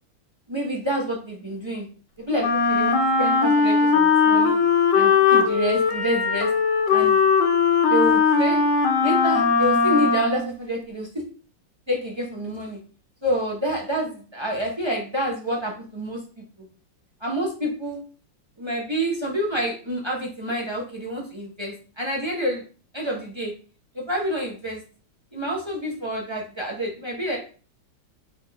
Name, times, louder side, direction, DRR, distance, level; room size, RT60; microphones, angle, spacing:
voice 1, 0.5-1.9 2.2-4.6 4.9-6.5 6.9-7.2 7.9-8.6 9.0-11.2 11.9-12.8 13.2-16.2 16.6-16.7 17.2-18.0 18.6-22.6 22.9-23.5 23.9-24.8 25.3-27.4, right 1 dB, 30° right, -2 dB, 0.5 m, -28 dB
Wind instrument woodwind instrument, 2.4-10.5, left 5 dB, 75° left, 1.4 m, -19 dB
4.3 x 3.5 x 3.4 m, 0.39 s
omnidirectional pair, 2.1 m